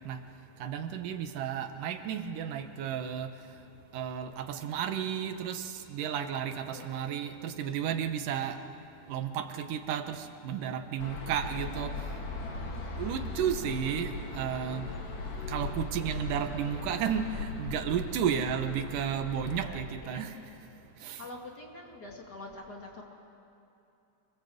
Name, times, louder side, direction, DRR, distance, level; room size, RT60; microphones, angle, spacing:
voice 1, 0.6-3.3 3.9-8.6 9.1-12.0 13.0-15.0 15.5-20.3 21.0-21.2, right 8 dB, 90° right, 8 dB, 2.8 m, -33 dB
voice 2, 6.7-7.2 19.5-20.4 21.2-23.0, left 2 dB, 35° left, 0 dB, 2.5 m, -46 dB
sound 1, 11.0-19.6, left 3 dB, 80° left, 4.4 m, -38 dB
27.5 x 21.5 x 7.9 m, 2.8 s
omnidirectional pair, 3.7 m